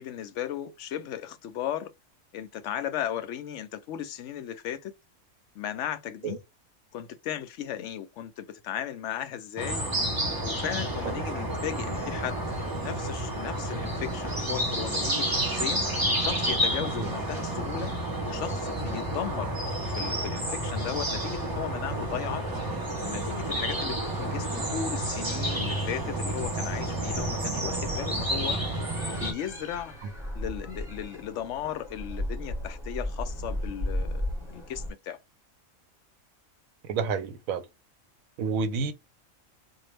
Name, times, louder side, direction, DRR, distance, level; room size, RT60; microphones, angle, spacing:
voice 1, 0.0-1.9 2.3-4.9 5.5-6.4 6.9-9.9 10.4-12.4 12.8-15.9 16.2-17.9 18.2-19.5 19.9-28.6 29.2-29.9 30.3-35.2, left 10 dB, 70° left, 0.8 m, -36 dB
sound 1, 9.6-29.3, right 1 dB, 20° right, 0.8 m, -30 dB
sound 2, 21.1-34.9, equal, ahead, 1.9 m, -38 dB
voice 2, 36.8-37.6 38.4-38.9, right 5 dB, 85° right, 1.1 m, -29 dB
3.9 x 2.5 x 3.2 m
omnidirectional pair, 1.4 m